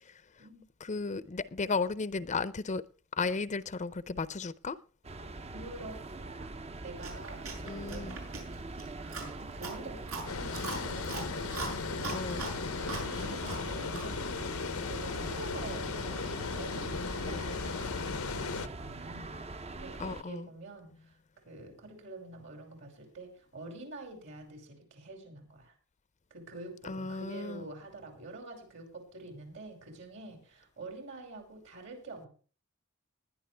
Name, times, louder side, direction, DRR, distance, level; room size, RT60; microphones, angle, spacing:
voice 1, 0.8-2.8 3.1-4.8 7.6-8.2 12.1-12.5 20.0-20.5 26.8-27.7, left 4 dB, 35° left, 0.6 m, -34 dB
sound 1, 5.0-20.2, right 3 dB, 30° right, 0.7 m, -43 dB
voice 2, 5.5-6.0 6.2-6.5 6.8-8.6 8.9-11.1 12.0-12.8 13.1-14.3 14.9-19.4 19.7-21.2 21.4-25.7 26.3-32.3, right 2 dB, 60° right, 5.7 m, -47 dB
Chewing mastication, 7.0-14.2, right 3 dB, 90° right, 6.8 m, -42 dB
Water, 10.3-18.7, left 4 dB, 90° left, 0.8 m, -36 dB
20.0 x 11.0 x 3.4 m
head